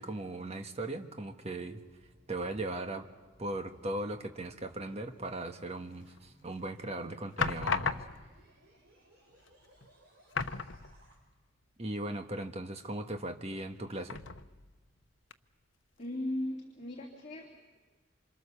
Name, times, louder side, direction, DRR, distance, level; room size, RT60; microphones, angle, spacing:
voice 1, 0.0-1.8 2.3-3.1 3.4-8.0 11.8-14.2, right 2 dB, 35° right, 6 dB, 1.5 m, -38 dB
sound 1, 1.5-11.2, right 1 dB, 55° right, 7.5 m, -64 dB
sound 2, 6.1-6.6 7.4-8.4 9.4-9.5 9.8-9.9 10.3-11.3 11.6-11.7 14.1-14.8 15.3-15.4, left 5 dB, 80° left, 0.9 m, -35 dB
voice 2, 16.0-17.8, left 1 dB, 35° left, -1 dB, 3.0 m, -38 dB
27.5 x 26.5 x 7.0 m, 1.2 s
head